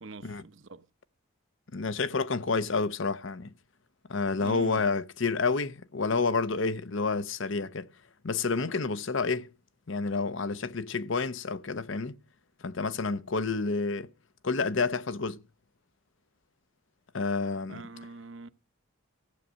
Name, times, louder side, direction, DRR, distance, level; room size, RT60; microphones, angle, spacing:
voice 1, 0.0-0.9 4.4-4.9 17.7-18.5, right 3 dB, 60° right, 0.9 m, -44 dB
voice 2, 1.7-3.5 4.1-7.9 8.2-9.5 9.9-12.2 12.6-14.1 14.4-15.4 17.1-17.8, left 4 dB, 60° left, 0.7 m, -29 dB
15.0 x 8.5 x 6.3 m
head